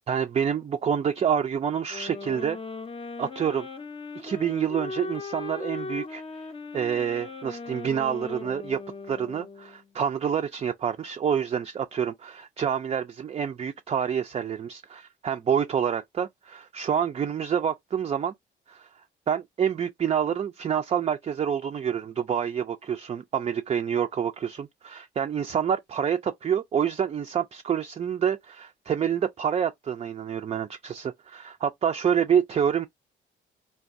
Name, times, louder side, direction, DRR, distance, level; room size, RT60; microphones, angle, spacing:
voice 1, 0.1-2.6 3.2-3.7 4.2-6.2 6.7-8.8 9.1-18.3 18.7-18.9 19.3-32.9, right 8 dB, 30° right, 0.4 m, -27 dB
sound 1, 1.9-9.9, left 4 dB, 30° left, 0.5 m, -38 dB
3.3 x 2.3 x 2.5 m
cardioid pair, 90°, 20 cm